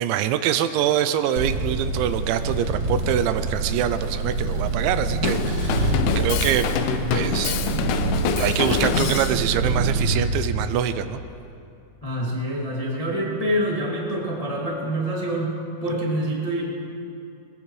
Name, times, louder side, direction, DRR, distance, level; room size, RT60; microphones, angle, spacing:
voice 1, 0.0-6.7 7.1-7.6 8.4-11.2, right 10 dB, 85° right, 11 dB, 2.8 m, -24 dB
sound 1, 1.4-10.3, right 2 dB, 55° right, 1.8 m, -26 dB
Drum kit, 5.2-9.4, left 6 dB, 90° left, 3.3 m, -25 dB
voice 2, 12.0-15.5 15.8-16.6, right 1 dB, 35° left, -5 dB, 0.5 m, -26 dB
21.0 x 20.5 x 3.2 m, 2.7 s
omnidirectional pair, 5.4 m